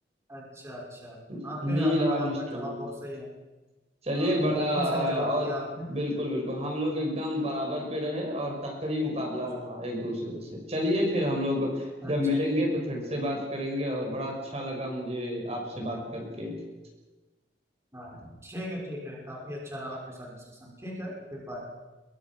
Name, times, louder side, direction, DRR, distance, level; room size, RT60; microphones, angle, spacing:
voice 1, 0.3-1.2 1.4-3.3 4.1-5.9 9.1-9.3 12.0-12.4 15.8-15.9 17.9-21.6, equal, 15° right, -2 dB, 5.9 m, -38 dB
voice 2, 1.3-2.8 4.0-5.5 5.9-16.5, equal, 35° right, 1 dB, 6.0 m, -29 dB
27.0 x 23.5 x 6.2 m, 1.2 s
head